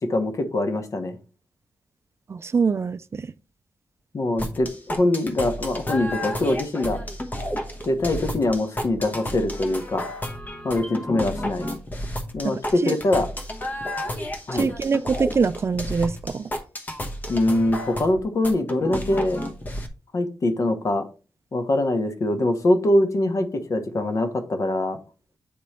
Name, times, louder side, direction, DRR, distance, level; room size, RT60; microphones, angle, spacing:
voice 1, 0.0-1.2 4.1-7.0 7.8-10.1 10.6-11.7 12.3-13.3 14.5-14.7 17.3-19.4 20.1-21.1 21.5-25.0, left 1 dB, 50° left, 1.1 m, -23 dB
voice 2, 2.3-3.3 12.4-12.9 14.5-16.5, right 5 dB, 40° right, 0.4 m, -24 dB
sound 1, 4.4-19.9, left 1 dB, 25° left, 1.0 m, -32 dB
8.6 x 3.1 x 4.3 m
cardioid pair, 95°, 7 cm